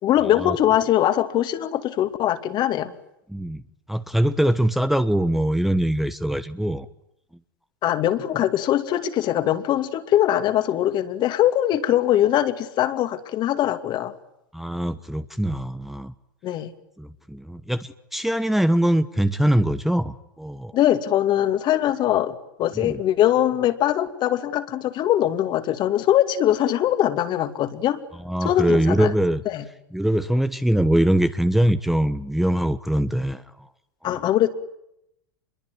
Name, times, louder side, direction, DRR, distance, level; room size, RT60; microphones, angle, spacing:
voice 1, 0.0-2.9 7.8-14.1 16.4-16.7 20.7-28.0 28.4-29.1 29.5-29.6 34.0-34.5, left 12 dB, 40° left, 9 dB, 2.6 m, -22 dB
voice 2, 3.3-3.6 3.9-6.9 14.5-16.1 17.0-20.7 22.8-23.0 28.2-29.4 29.9-33.4 34.0-34.2, right 1 dB, ahead, 11 dB, 1.1 m, -22 dB
28.0 x 22.5 x 9.4 m, 0.81 s
hypercardioid pair, 95°, 11 cm